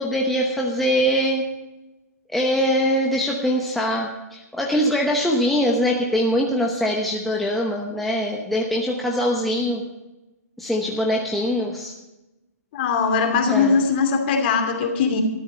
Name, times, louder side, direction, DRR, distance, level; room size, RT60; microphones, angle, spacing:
voice 1, 0.0-1.5 2.3-9.8 10.6-11.9 13.5-13.8, equal, ahead, -2 dB, 1.0 m, -22 dB
voice 2, 12.7-15.2, left 5 dB, 35° left, 4 dB, 2.7 m, -20 dB
13.0 x 11.5 x 5.5 m, 1.0 s
hypercardioid pair, 160°, 9 cm